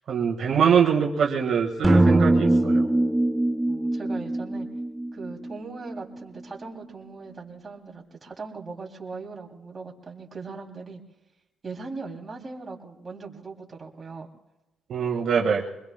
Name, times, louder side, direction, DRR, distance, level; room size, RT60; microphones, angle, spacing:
voice 1, 0.1-2.8 14.9-15.6, right 7 dB, 65° right, -1 dB, 1.6 m, -23 dB
sound 1, 1.8-6.0, right 1 dB, 5° right, 0.7 m, -22 dB
voice 2, 3.7-4.7 5.1-11.0 11.6-14.3 15.4-15.5, right 4 dB, 30° right, 0 dB, 2.8 m, -39 dB
24.5 x 21.0 x 2.2 m, 0.98 s
cardioid pair, 90°, 0 cm